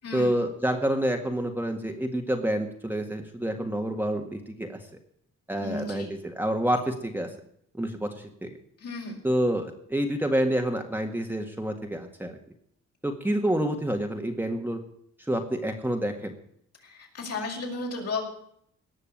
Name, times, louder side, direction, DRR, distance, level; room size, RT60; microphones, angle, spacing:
voice 1, 0.1-4.8 5.5-7.3 7.8-8.6 9.2-12.4 13.0-14.8 15.2-16.3, right 1 dB, 5° right, 3 dB, 1.7 m, -28 dB
voice 2, 5.6-6.1 8.8-9.2 16.8-18.2, left 3 dB, 55° left, 0 dB, 5.3 m, -34 dB
18.0 x 6.5 x 8.8 m, 0.70 s
cardioid pair, 90°, 30 cm